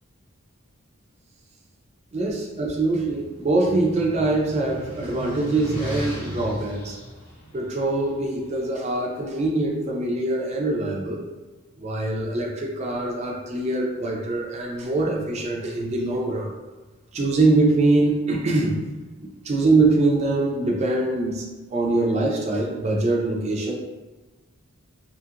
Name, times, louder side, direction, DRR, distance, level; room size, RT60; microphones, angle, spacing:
voice 1, 2.1-7.0 7.5-11.2 11.8-16.5 17.1-18.8 19.2-21.4 21.7-23.7, right 2 dB, 30° right, -1 dB, 0.3 m, -23 dB
sound 1, 2.5-8.7, equal, 70° left, 0.9 m, -36 dB
2.7 x 2.4 x 2.7 m, 1.2 s
head